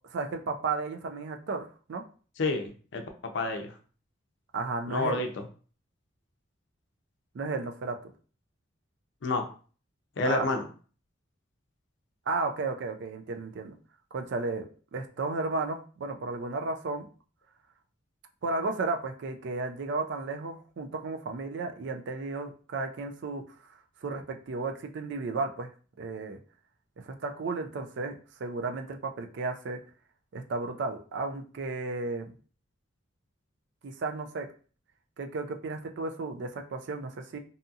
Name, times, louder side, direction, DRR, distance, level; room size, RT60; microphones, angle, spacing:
voice 1, 0.1-2.0 4.5-5.2 7.3-8.1 10.2-10.4 12.3-13.8 14.1-14.7 14.9-17.1 18.4-23.4 24.0-25.7 26.0-26.4 27.0-29.8 30.3-32.3 33.8-34.5 35.2-37.4, right 3 dB, 65° right, 5 dB, 0.4 m, -33 dB
voice 2, 2.4-3.0 3.3-3.7 4.9-5.3 9.2-9.4 10.2-10.6, left 3 dB, 65° left, 5 dB, 0.5 m, -29 dB
2.7 x 2.6 x 2.4 m, 0.40 s
head